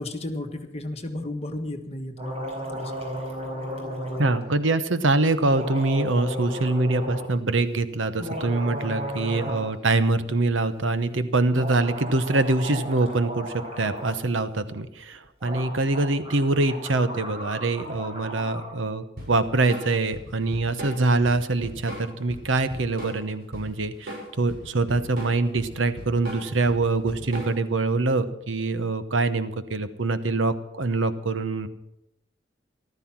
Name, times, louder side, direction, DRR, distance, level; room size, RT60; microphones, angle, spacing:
voice 1, 0.0-2.4 2.7-2.9, left 1 dB, 35° left, 4 dB, 1.5 m, -33 dB
sound 1, 2.2-4.4 5.4-7.3 8.1-9.7 10.0-10.1 11.5-14.2 15.1-15.2 15.4-18.7, equal, 35° right, 4.6 m, -34 dB
voice 2, 4.2-31.7, right 2 dB, 80° right, 12 dB, 1.0 m, -24 dB
Drum kit / Drum, 19.2-27.8, equal, 55° right, 6.9 m, -38 dB
14.0 x 13.0 x 6.0 m, 0.87 s
head